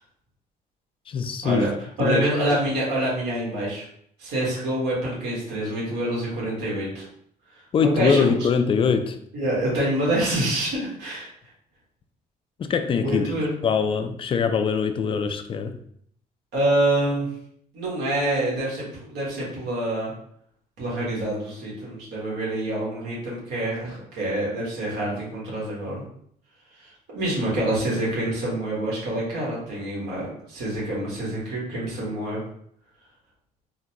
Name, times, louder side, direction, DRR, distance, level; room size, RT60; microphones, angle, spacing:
voice 1, 1.1-1.6 2.0-2.6 7.7-9.2 12.6-13.2 13.6-15.8, left 6 dB, 30° left, 0.3 m, -23 dB
voice 2, 2.0-3.8 4.2-7.0 7.6-8.3 9.3-11.3 13.0-13.5 16.5-17.3 17.7-20.1 20.8-26.0 26.8-32.4, right 1 dB, 80° right, 1.5 m, -26 dB
3.8 x 2.2 x 2.8 m
cardioid pair, 110°, 17 cm